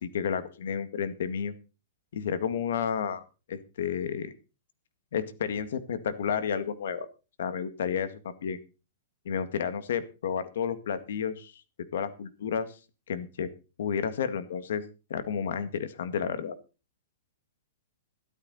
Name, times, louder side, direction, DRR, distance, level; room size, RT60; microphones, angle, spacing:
voice 1, 0.0-1.5 2.1-3.2 3.5-4.3 5.1-7.1 7.4-8.6 9.3-11.5 11.9-12.7 13.1-13.5 13.8-14.8 15.1-16.6, left 7 dB, 70° left, 11 dB, 2.0 m, -31 dB
13.0 x 12.5 x 4.1 m, 0.32 s
hypercardioid pair, 165°, 0 cm